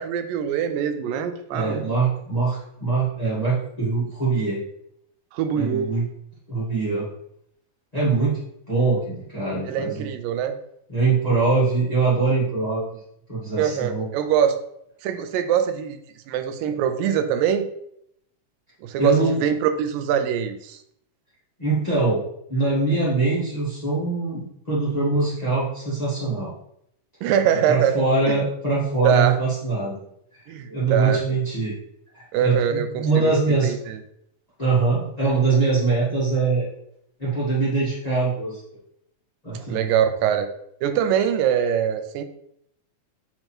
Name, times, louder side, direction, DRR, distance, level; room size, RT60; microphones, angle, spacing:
voice 1, 0.0-1.8 5.3-5.9 9.6-10.6 13.6-14.6 15.0-16.0 16.3-17.7 18.8-20.8 27.2-28.4 29.0-29.3 30.5-31.2 32.3-34.0 39.5-40.5 40.8-42.2, right 9 dB, 80° right, 8 dB, 2.2 m, -23 dB
voice 2, 1.5-4.6 5.5-6.1 6.5-7.1 7.9-8.3 8.7-10.1 10.9-12.8 13.3-14.1 19.0-19.4 21.6-22.2 22.5-26.5 27.7-30.0 30.7-31.7 32.1-33.7 34.6-36.7 37.2-38.6 39.4-39.9, right 3 dB, 55° left, -8 dB, 0.4 m, -23 dB
8.7 x 3.0 x 4.4 m, 0.73 s
omnidirectional pair, 4.1 m